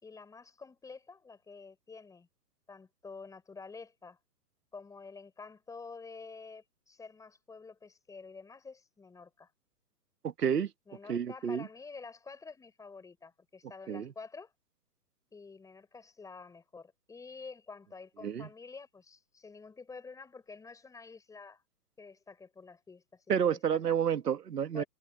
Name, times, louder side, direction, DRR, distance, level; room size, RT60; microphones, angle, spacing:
voice 1, 0.0-2.3 2.7-4.2 4.7-9.5 10.9-14.5 15.3-21.6 22.0-24.0 24.7-24.9, left 4 dB, 5° left, 5.1 m, -49 dB
voice 2, 10.2-10.7 11.1-11.7 13.9-14.1 18.2-18.5 23.3-24.8, right 8 dB, 80° right, 2.0 m, -30 dB
hypercardioid pair, 145°, 47 cm